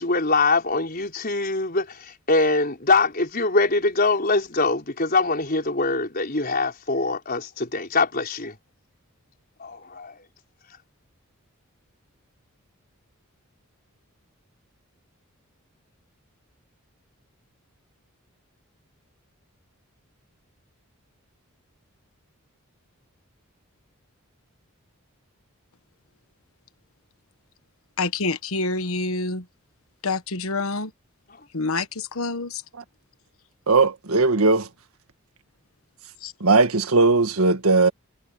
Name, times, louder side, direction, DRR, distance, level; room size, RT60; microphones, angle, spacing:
voice 1, 0.0-8.6 9.6-10.2, left 3 dB, 45° left, 4.6 m, -23 dB
voice 2, 28.0-29.4 30.0-30.9 31.5-32.6 36.2-36.3, left 3 dB, 75° left, 1.3 m, -27 dB
voice 3, 33.7-34.7 36.4-37.9, right 3 dB, 80° right, 1.7 m, -18 dB
head